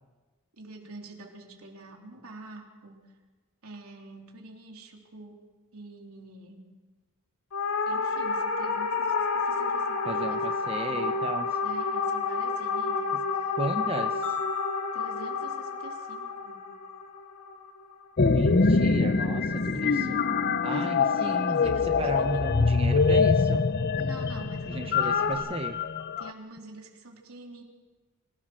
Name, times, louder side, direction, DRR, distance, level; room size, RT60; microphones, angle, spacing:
voice 1, 0.6-3.1 3.6-6.7 7.9-10.5 10.8-11.2 11.6-14.1 14.9-16.7 19.8-22.5 24.0-25.5 26.2-27.6, right 2 dB, 80° right, 1 dB, 3.6 m, -46 dB
sound 1, 7.5-18.0 25.0-25.3, left 4 dB, 90° left, 2.5 m, -30 dB
voice 2, 10.0-11.5 13.6-14.1 18.2-20.2 20.6-23.6 24.7-25.8, right 2 dB, 25° right, 6 dB, 0.8 m, -34 dB
sound 2, 14.2-16.6, left 6 dB, 65° left, 1.8 m, -40 dB
sound 3, 18.2-26.3, left 4 dB, 45° left, 0.6 m, -24 dB
25.5 x 18.0 x 6.2 m, 1.3 s
head